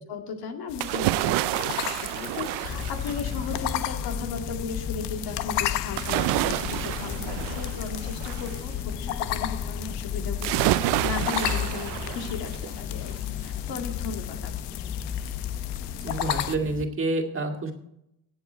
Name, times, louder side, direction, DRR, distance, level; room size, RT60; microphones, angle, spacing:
voice 1, 0.1-13.1 13.4-14.9, left 4 dB, 65° left, 4 dB, 2.3 m, -36 dB
sound 1, 0.7-16.6, left 12 dB, 85° left, 0.9 m, -35 dB
sound 2, 0.8-3.6 6.0-8.6 10.4-12.7 13.1-13.2, right 19 dB, 80° right, 0.5 m, -28 dB
sound 3, 2.7-16.9, left 8 dB, 20° left, 0.4 m, -34 dB
voice 2, 16.0-17.7, right 2 dB, 30° right, 4 dB, 2.0 m, -28 dB
16.5 x 8.1 x 4.5 m, 0.80 s
cardioid pair, 125°, 40 cm